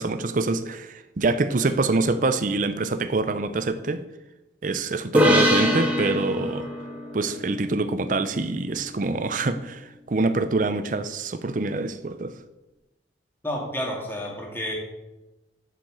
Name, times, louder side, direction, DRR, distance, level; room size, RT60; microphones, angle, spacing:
voice 1, 0.0-4.0 4.6-6.7 7.1-12.3, right 3 dB, 45° right, 10 dB, 0.5 m, -25 dB
sound 1, 5.1-8.6, equal, 10° right, 1.6 m, -24 dB
voice 2, 13.4-14.7, equal, 10° left, -1 dB, 2.1 m, -30 dB
7.3 x 6.9 x 7.7 m, 1.0 s
head